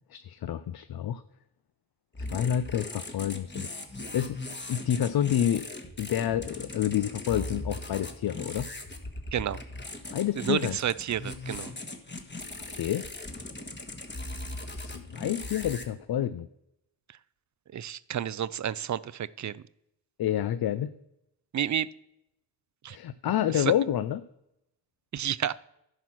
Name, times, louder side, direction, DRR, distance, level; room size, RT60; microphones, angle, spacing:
voice 1, 0.1-1.2 2.3-3.7 4.1-4.4 4.7-5.7 6.0-8.7 10.1-10.8 12.7-13.1 14.7-16.5 20.2-20.9 22.9-24.2, left 10 dB, 55° left, 13 dB, 0.5 m, -28 dB
sound 1, 2.1-15.8, left 2 dB, 25° left, 1.4 m, -39 dB
voice 2, 10.3-11.7 17.1-17.2 17.7-19.6 21.5-21.9 22.8-23.0 23.5-23.7 25.1-25.5, right 10 dB, 45° right, 19 dB, 0.4 m, -30 dB
11.0 x 4.6 x 6.1 m, 0.82 s
supercardioid pair, 40°, 44 cm